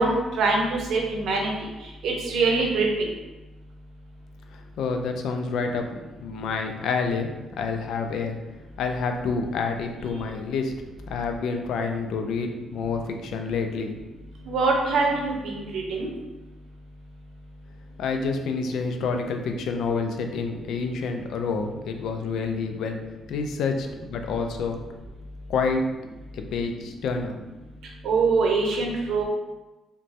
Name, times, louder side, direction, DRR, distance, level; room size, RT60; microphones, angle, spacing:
voice 1, 0.0-1.5 2.0-3.1 14.5-16.1 28.0-29.2, right 3 dB, 75° right, 0 dB, 0.6 m, -23 dB
voice 2, 4.5-5.9 6.2-8.4 8.8-10.8 11.1-14.0 18.0-23.0 23.3-24.8 25.5-25.9 26.3-27.4, left 4 dB, 75° left, 5 dB, 0.3 m, -28 dB
3.0 x 2.2 x 2.7 m, 1.1 s
cardioid pair, 90°, 0 cm